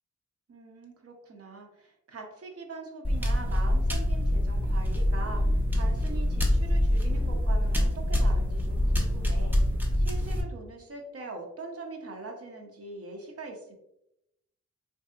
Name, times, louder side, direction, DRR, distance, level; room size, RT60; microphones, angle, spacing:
voice 1, 0.5-9.6 10.0-13.8, right 3 dB, 55° right, 3 dB, 0.6 m, -42 dB
sound 1, 3.0-10.4, left 1 dB, 5° right, 0.4 m, -25 dB
3.4 x 2.7 x 2.3 m, 0.82 s
wide cardioid pair, 155°, 29 cm